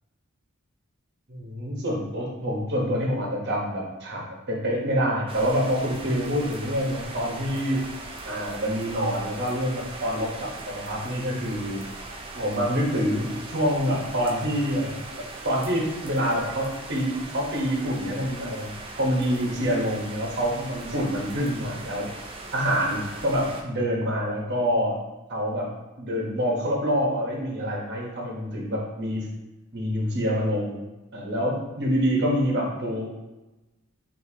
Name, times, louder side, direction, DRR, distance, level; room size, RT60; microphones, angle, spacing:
voice 1, 1.3-7.8 8.2-11.8 12.3-15.0 15.4-22.1 22.5-25.0 25.3-25.7 26.0-29.3 29.7-30.7 31.1-33.3, equal, 50° right, -2 dB, 1.1 m, -26 dB
sound 1, 5.3-23.6, right 2 dB, 25° right, 0.5 m, -40 dB
6.6 x 2.7 x 2.8 m, 1.0 s
head